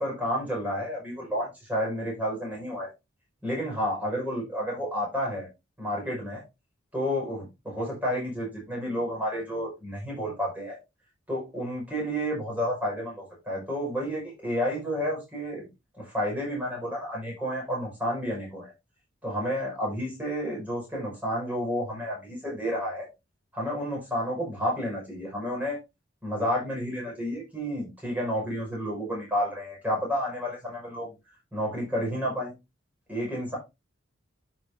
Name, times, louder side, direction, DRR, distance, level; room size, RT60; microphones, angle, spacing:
voice 1, 0.0-2.9 3.4-5.5 5.8-6.4 6.9-10.8 11.3-15.7 16.0-18.7 19.2-23.1 23.5-25.8 26.2-31.1 31.5-32.5 33.1-33.6, equal, 5° right, -4 dB, 6.1 m, -30 dB
12.0 x 6.0 x 2.8 m, 0.24 s
head